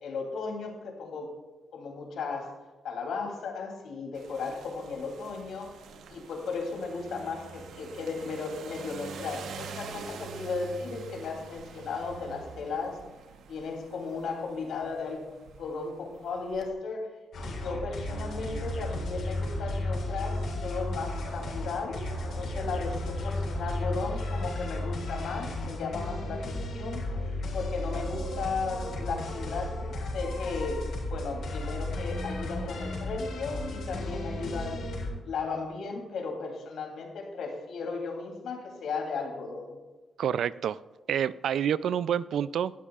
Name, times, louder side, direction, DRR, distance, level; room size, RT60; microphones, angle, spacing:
voice 1, 0.0-1.3 1.7-2.5 2.8-5.8 6.1-13.0 13.5-15.2 15.6-17.1 17.4-29.8 30.1-34.9 35.2-39.8, left 4 dB, 75° left, 1 dB, 3.1 m, -35 dB
sound 1, 4.1-16.7, right 6 dB, 85° right, 1.1 m, -46 dB
sound 2, 17.3-35.1, left 1 dB, 60° left, 4.3 m, -34 dB
voice 2, 40.2-40.8 41.1-42.7, right 9 dB, 65° right, 17 dB, 0.3 m, -28 dB
18.5 x 13.0 x 2.4 m, 1.2 s
wide cardioid pair, 170°, 0 cm